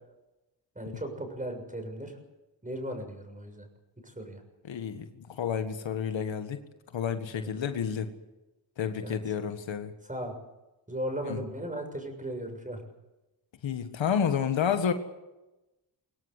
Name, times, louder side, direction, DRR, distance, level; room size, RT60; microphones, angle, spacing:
voice 1, 0.8-2.1 2.6-3.7 4.2-4.4 7.4-7.5 9.0-9.2 10.1-10.3 10.9-12.8, right 1 dB, 15° right, 5 dB, 6.9 m, -36 dB
voice 2, 4.6-6.6 6.9-8.1 8.8-9.9 11.2-11.4 13.6-14.9, left 7 dB, 85° left, 8 dB, 1.7 m, -30 dB
23.5 x 17.5 x 8.3 m, 1.0 s
cardioid pair, 65°, 44 cm